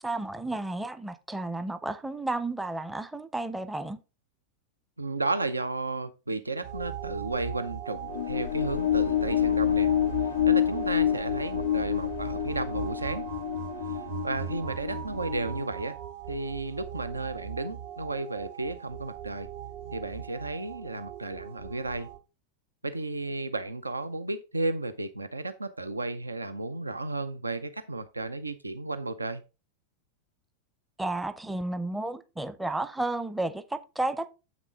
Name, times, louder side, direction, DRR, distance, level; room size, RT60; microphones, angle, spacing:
voice 1, 0.0-4.0 31.0-34.3, right 2 dB, 5° right, 0.6 m, -32 dB
voice 2, 5.0-9.9 10.5-13.3 14.2-16.0 16.3-19.5 19.9-22.1 22.8-29.4, right 2 dB, 80° right, 0.5 m, -33 dB
sound 1, 6.6-22.2, right 10 dB, 55° right, 0.7 m, -40 dB
sound 2, 8.0-15.6, left 11 dB, 60° left, 0.4 m, -28 dB
7.6 x 6.0 x 3.6 m
figure-of-eight pair, 90°, 0 cm